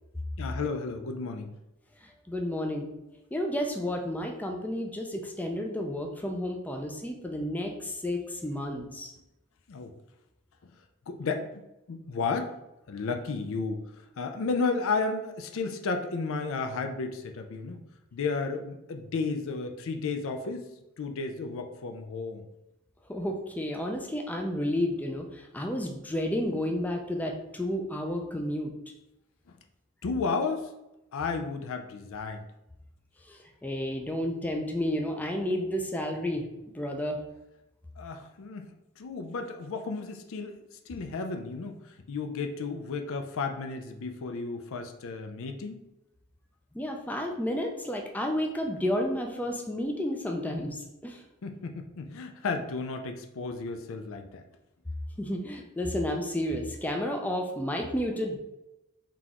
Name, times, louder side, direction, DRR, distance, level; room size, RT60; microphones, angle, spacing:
voice 1, 0.4-1.5 9.7-9.9 11.1-11.6 11.9-12.6 12.9-13.8 14.2-17.8 18.1-20.7 21.0-22.4 30.0-30.7 31.1-32.4 38.0-38.7 39.0-45.8 51.4-54.4, left 4 dB, 65° left, 6 dB, 0.4 m, -33 dB
voice 2, 2.3-2.9 3.3-9.1 23.1-28.7 33.3-36.5 36.7-37.2 46.7-50.8 51.0-51.2 55.2-58.4, left 1 dB, 5° left, 2 dB, 0.4 m, -31 dB
3.8 x 2.9 x 3.6 m, 0.93 s
head